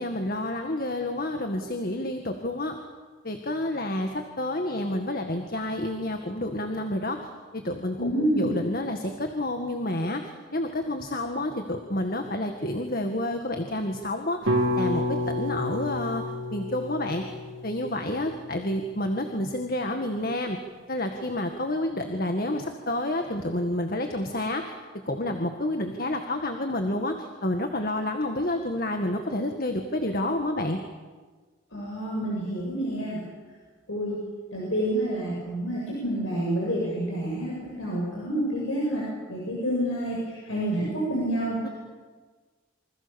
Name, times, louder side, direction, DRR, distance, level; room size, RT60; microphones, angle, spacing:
voice 1, 0.0-2.8 3.2-7.2 7.5-16.2 16.5-17.4 17.6-20.6 20.9-24.7 25.1-30.8 41.6-41.7, left 1 dB, 45° left, 5 dB, 1.9 m, -29 dB
voice 2, 8.0-8.5 31.7-33.2 33.9-34.2 34.5-41.6, right 1 dB, 80° left, -4 dB, 7.9 m, -28 dB
sound 1, 14.5-18.7, left 1 dB, 80° right, 3.1 m, -30 dB
28.0 x 25.5 x 7.2 m, 1.4 s
head